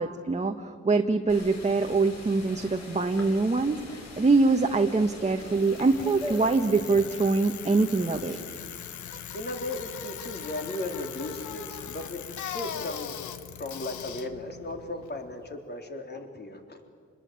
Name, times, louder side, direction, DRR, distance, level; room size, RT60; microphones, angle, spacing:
voice 1, 0.0-3.8 4.2-8.4, right 3 dB, 25° right, 4 dB, 1.4 m, -24 dB
sound 1, 1.3-6.5, left 3 dB, 65° left, 6.4 m, -45 dB
sound 2, 1.8-8.4, left 1 dB, 5° right, 4.4 m, -46 dB
Bicycle, 5.5-15.5, left 8 dB, 80° left, 1.5 m, -40 dB
voice 2, 9.1-13.2 13.5-16.8, left 2 dB, 35° left, 4 dB, 3.7 m, -36 dB
27.5 x 21.0 x 9.0 m, 2.1 s
cardioid pair, 95°, 29 cm